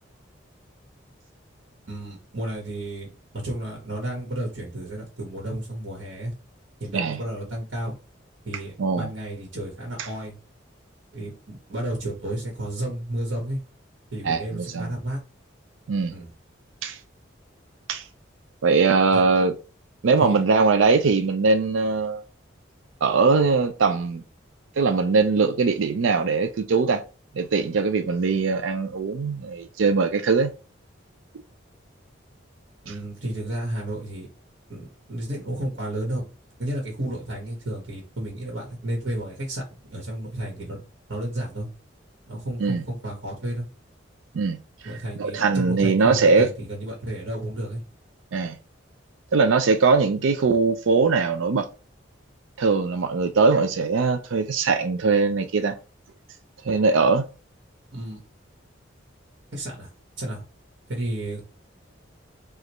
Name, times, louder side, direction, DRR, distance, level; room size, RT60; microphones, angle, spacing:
voice 1, 1.9-3.1 3.3-6.3 6.8-7.9 8.4-10.3 11.1-13.6 14.1-15.2 16.1-16.3 19.1-19.2 20.2-20.4 32.8-34.3 34.7-36.2 36.6-39.6 39.9-40.8 41.1-41.7 42.3-43.7 44.8-47.8 57.9-58.2 59.5-59.9 60.2-60.4 60.9-61.4, right 1 dB, 70° right, 1.4 m, -32 dB
voice 2, 14.2-14.9 15.9-16.1 16.8-17.0 17.9-18.0 18.6-19.5 20.0-22.2 23.0-24.2 24.8-27.0 27.4-30.5 42.6-42.8 44.3-44.6 45.2-46.5 48.3-48.6 49.3-51.7 52.6-55.8 56.6-57.3, right 4 dB, 85° right, 0.4 m, -21 dB
5.0 x 2.5 x 3.0 m
head